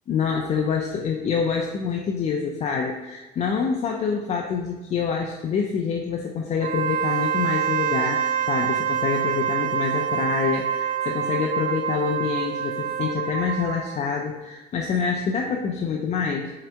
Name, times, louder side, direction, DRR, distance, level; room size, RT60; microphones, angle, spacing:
voice 1, 0.1-16.5, left 6 dB, 40° left, 1 dB, 0.3 m, -26 dB
Wind instrument woodwind instrument, 6.6-14.0, right 9 dB, 55° right, 0.4 m, -26 dB
4.1 x 2.8 x 3.4 m, 1.2 s
cardioid pair, 110°, 17 cm